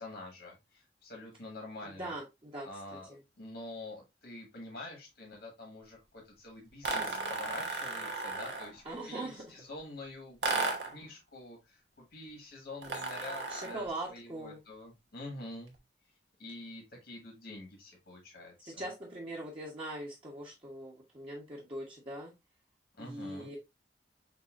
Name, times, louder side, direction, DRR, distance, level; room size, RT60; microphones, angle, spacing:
voice 1, 0.0-2.1 2.6-15.7 16.4-18.8 23.0-23.5, left 2 dB, 70° left, 0 dB, 1.7 m, -47 dB
voice 2, 1.8-2.7 3.1-3.2 8.8-9.4 13.5-14.6 18.6-22.3 23.0-23.6, right 1 dB, 30° right, -4 dB, 1.2 m, -41 dB
sound 1, 6.8-8.8 10.4-11.0 12.8-13.8, right 3 dB, 75° right, 1.1 m, -34 dB
6.8 x 2.7 x 2.5 m, 0.22 s
head